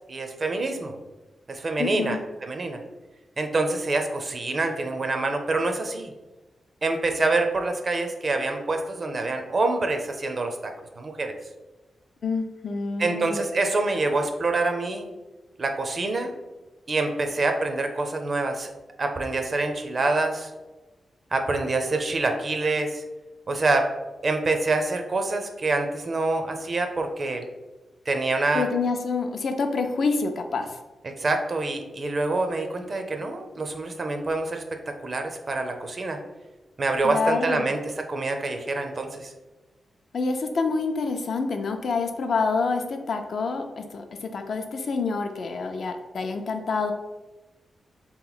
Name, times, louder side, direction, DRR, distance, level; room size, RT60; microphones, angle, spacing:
voice 1, 0.1-0.9 1.5-2.8 3.4-6.1 6.8-11.4 13.0-15.1 15.6-16.3 16.9-18.7 19.0-20.5 21.3-23.0 23.5-23.9 24.2-27.4 28.1-28.6 31.0-36.2 36.8-39.3, right 2 dB, 40° right, 5 dB, 0.5 m, -26 dB
voice 2, 1.8-2.2 12.2-13.4 28.5-30.8 37.0-37.7 40.1-46.9, left 4 dB, 60° left, 5 dB, 0.4 m, -27 dB
3.7 x 3.0 x 3.9 m, 1.1 s
wide cardioid pair, 115°, 0 cm